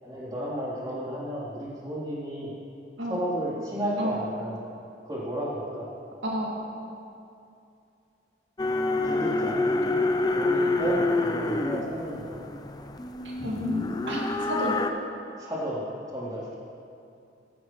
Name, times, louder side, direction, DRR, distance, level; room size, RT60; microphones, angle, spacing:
voice 1, 0.0-2.5 3.1-4.6 5.0-5.9 9.0-9.5 10.3-12.4 15.4-15.8 16.1-16.5, equal, 20° right, -7 dB, 3.4 m, -32 dB
voice 2, 6.2-6.6 13.2-14.2 14.5-14.7, equal, 85° right, -3 dB, 2.1 m, -31 dB
sound 1, 8.6-14.9, left 2 dB, 20° left, 0.6 m, -27 dB
17.0 x 14.5 x 3.2 m, 2.5 s
head